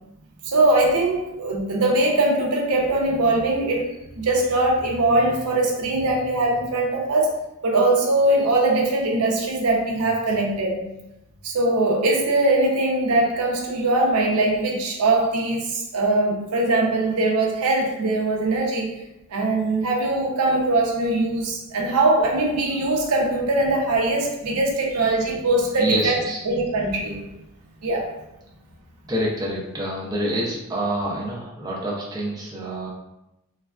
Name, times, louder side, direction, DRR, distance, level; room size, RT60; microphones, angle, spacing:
voice 1, 0.4-3.9 4.1-7.4 7.6-10.8 11.4-18.9 19.3-26.2 26.4-27.2 27.8-28.1, right 2 dB, 90° right, -1 dB, 0.6 m, -21 dB
voice 2, 25.8-26.4 29.1-32.9, right 1 dB, 15° right, -4 dB, 0.4 m, -27 dB
3.2 x 2.3 x 2.3 m, 0.90 s
head